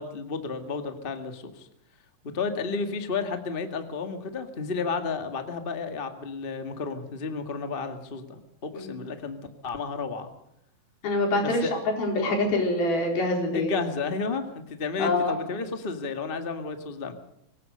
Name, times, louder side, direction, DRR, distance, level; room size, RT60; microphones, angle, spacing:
voice 1, 0.0-1.7 2.3-9.4 9.6-10.3 11.4-11.7 13.5-17.1, left 4 dB, 30° left, 7 dB, 1.0 m, -32 dB
voice 2, 11.0-13.7 15.0-15.3, left 2 dB, 80° left, 2 dB, 6.1 m, -25 dB
25.0 x 17.0 x 6.8 m, 0.79 s
omnidirectional pair, 4.2 m